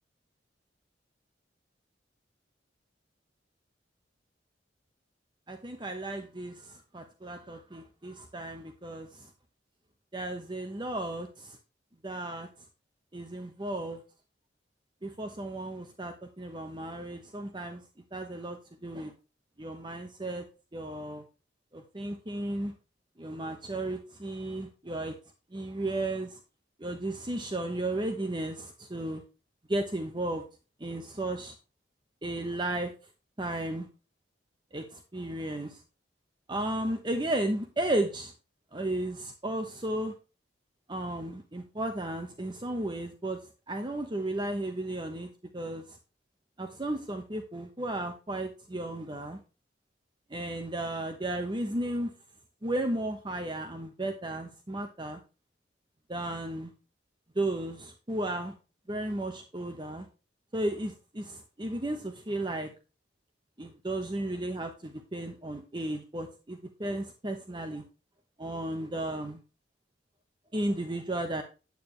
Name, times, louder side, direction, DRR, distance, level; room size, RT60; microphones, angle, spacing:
voice 1, 5.5-9.3 10.1-11.6 12.0-12.5 13.1-14.0 15.0-17.8 18.1-19.1 19.6-20.4 20.7-21.2 21.7-22.7 23.2-25.2 25.5-26.4 26.8-29.2 29.7-30.4 30.8-31.5 32.2-32.9 33.4-33.9 34.7-35.8 36.5-38.3 38.7-40.1 40.9-43.4 43.7-45.3 45.5-46.0 46.6-49.4 50.3-52.1 52.6-55.2 56.1-56.7 57.3-58.5 58.9-60.1 60.5-62.7 63.6-67.8 68.4-69.4 70.5-71.4, right 1 dB, 25° right, 5 dB, 1.0 m, -34 dB
9.4 x 8.8 x 3.2 m, 0.32 s
head